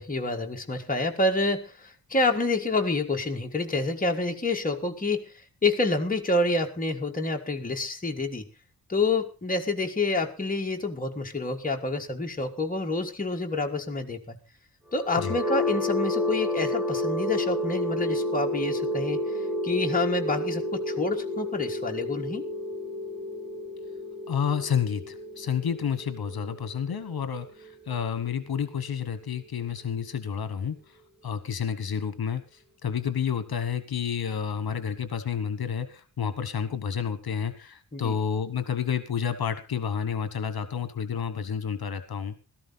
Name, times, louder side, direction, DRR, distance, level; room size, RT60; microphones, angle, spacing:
voice 1, 0.0-5.3 5.6-8.4 8.9-14.4 14.9-22.4 37.9-38.1, left 2 dB, 20° left, 2 dB, 1.7 m, -28 dB
sound 1, 14.9-28.8, left 1 dB, ahead, 2.6 m, -31 dB
voice 2, 24.3-31.0 31.2-42.4, left 7 dB, 70° left, 13 dB, 1.2 m, -30 dB
16.5 x 13.5 x 4.0 m, 0.32 s
wide cardioid pair, 165°, 38 cm